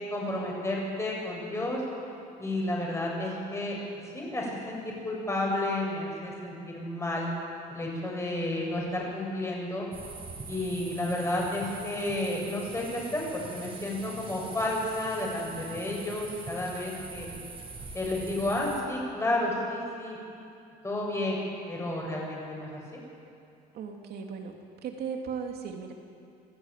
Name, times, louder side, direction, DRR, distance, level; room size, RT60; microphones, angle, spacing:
voice 1, 0.1-1.8 2.4-3.8 4.1-7.3 7.7-9.9 10.5-17.3 17.9-20.2 20.8-21.4 21.7-22.8, left 1 dB, 15° left, -2 dB, 7.7 m, -31 dB
sound 1, 9.9-18.8, right 3 dB, 35° right, 5.7 m, -43 dB
voice 2, 23.7-24.5 24.8-25.9, right 6 dB, 70° right, 3 dB, 3.0 m, -36 dB
27.0 x 14.5 x 9.3 m, 2.5 s
cardioid pair, 110°, 17 cm